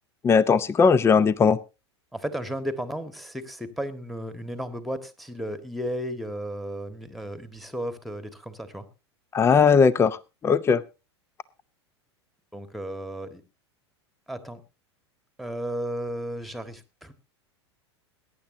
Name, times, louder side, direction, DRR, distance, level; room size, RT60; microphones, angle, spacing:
voice 1, 0.2-1.6 9.3-10.2 10.4-10.8, left 5 dB, 15° left, 20 dB, 0.6 m, -18 dB
voice 2, 2.1-8.9 12.5-13.4 14.3-14.6 15.4-17.1, equal, ahead, 9 dB, 1.7 m, -34 dB
21.5 x 10.5 x 2.7 m, 0.28 s
figure-of-eight pair, 90°, 15 cm